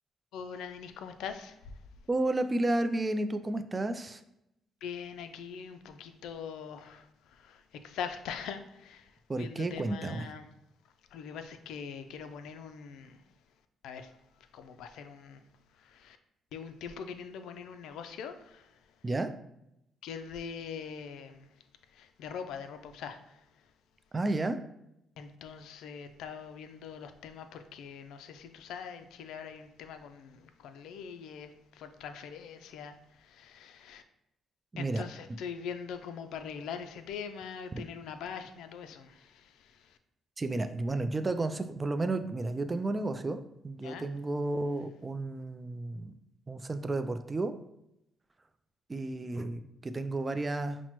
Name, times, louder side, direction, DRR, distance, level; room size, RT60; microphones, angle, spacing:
voice 1, 0.3-1.6 4.8-7.1 7.3-9.1 9.4-10.4 11.1-13.2 13.8-14.1 14.5-15.4 15.8-16.2 16.5-18.7 20.0-21.5 21.9-23.2 25.2-34.0 34.8-39.7 43.8-44.1, left 7 dB, 85° left, 8 dB, 0.3 m, -42 dB
voice 2, 2.1-4.2 9.3-10.3 19.0-19.3 24.1-24.6 34.7-35.0 40.4-46.1 46.5-47.5 48.9-50.8, right 2 dB, 25° right, 9 dB, 0.3 m, -32 dB
5.7 x 2.1 x 3.0 m, 0.81 s
cardioid pair, 90°, 0 cm